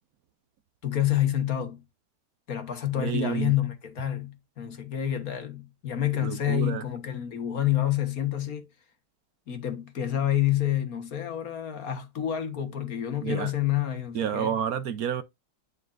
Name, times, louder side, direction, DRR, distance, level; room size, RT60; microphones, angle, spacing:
voice 1, 0.8-1.8 2.5-8.7 9.5-14.6, left 11 dB, 55° left, 1.7 m, -28 dB
voice 2, 2.9-3.5 6.1-6.8 13.2-13.5 14.1-15.2, right 9 dB, 65° right, 1.1 m, -30 dB
9.7 x 5.3 x 2.5 m
omnidirectional pair, 1.9 m